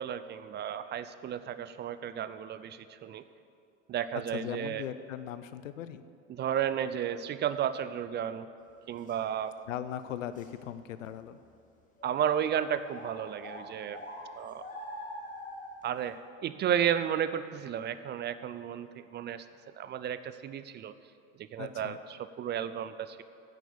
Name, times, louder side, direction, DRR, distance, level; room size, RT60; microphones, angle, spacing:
voice 1, 0.0-3.2 3.9-4.9 6.3-8.5 8.9-9.6 12.0-14.0 14.4-14.7 15.8-19.5 19.8-20.9 21.5-23.2, right 9 dB, 30° right, 13 dB, 0.4 m, -33 dB
voice 2, 4.3-6.0 9.7-11.4 21.6-22.0, left 10 dB, 85° left, 13 dB, 0.6 m, -39 dB
sound 1, 9.1-9.2 9.7-9.8 10.3-10.5 11.2-11.3 12.0-12.1 12.9-15.8, left 1 dB, 20° left, 2.3 m, -43 dB
9.1 x 8.0 x 7.0 m, 2.4 s
hypercardioid pair, 85°, 38 cm